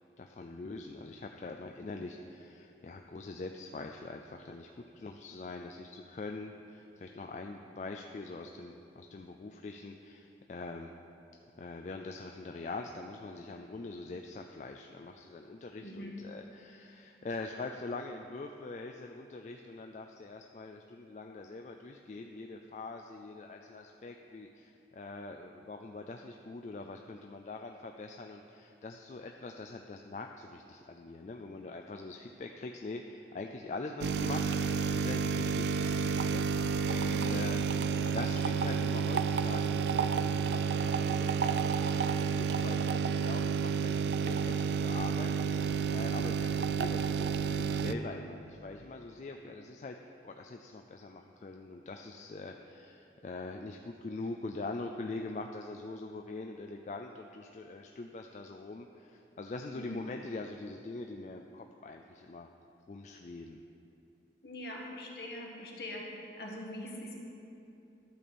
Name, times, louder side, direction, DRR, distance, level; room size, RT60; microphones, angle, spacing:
voice 1, 0.2-10.9 11.6-34.6 34.9-62.5 62.9-63.6, left 3 dB, 40° left, 3 dB, 0.3 m, -43 dB
voice 2, 15.8-16.1 59.7-60.0 64.4-67.1, left 1 dB, 60° left, -1 dB, 1.4 m, -43 dB
sound 1, 34.0-47.9, right 6 dB, 70° right, 0.3 m, -30 dB
12.0 x 4.3 x 6.8 m, 2.8 s
head